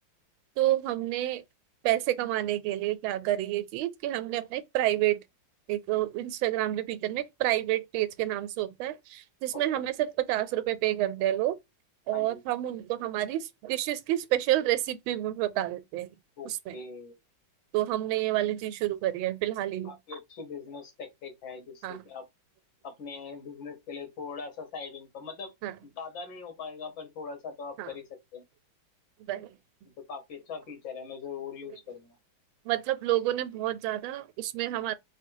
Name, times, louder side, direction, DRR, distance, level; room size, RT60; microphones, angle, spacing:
voice 1, 0.6-1.4 1.8-5.2 5.7-11.6 12.1-16.1 16.4-16.8 17.7-19.9 21.8-22.0 25.6-25.8 27.8-27.9 29.3-29.6 32.6-35.0, right 14 dB, 85° right, 1.4 m, -29 dB
voice 2, 16.4-17.2 19.8-22.2 22.8-25.5 25.8-28.0 28.3-28.4 30.0-32.1, left 5 dB, 70° left, 2.0 m, -41 dB
4.2 x 2.2 x 4.5 m
omnidirectional pair, 2.2 m